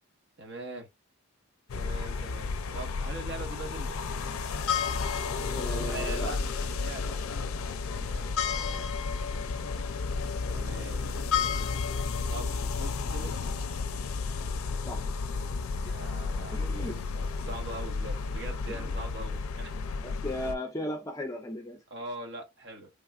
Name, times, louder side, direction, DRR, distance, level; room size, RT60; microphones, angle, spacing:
voice 1, 0.4-0.9 1.7-3.9 5.7-7.2 7.7-8.9 10.5-11.1 12.3-13.5 15.8-19.7 21.9-22.9, right 2 dB, 55° right, 1.1 m, -42 dB
sound 1, 1.7-20.5, left 4 dB, 80° left, 0.4 m, -32 dB
voice 2, 5.5-6.3 14.9-15.0 15.9-16.0 16.5-17.0 18.7-18.8 20.0-21.8, left 1 dB, 15° left, 0.5 m, -36 dB
3.3 x 2.3 x 2.3 m
head